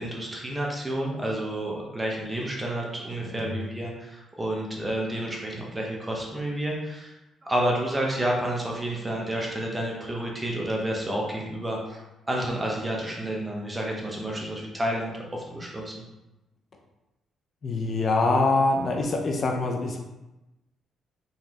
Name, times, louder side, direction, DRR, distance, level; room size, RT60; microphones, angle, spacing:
voice 1, 0.0-7.1 7.4-12.0 12.3-15.9, right 1 dB, 15° right, -2 dB, 1.0 m, -30 dB
voice 2, 3.2-3.7 17.6-20.0, left 3 dB, 45° left, 1 dB, 0.6 m, -25 dB
4.0 x 3.2 x 3.0 m, 0.99 s
cardioid pair, 90°, 0 cm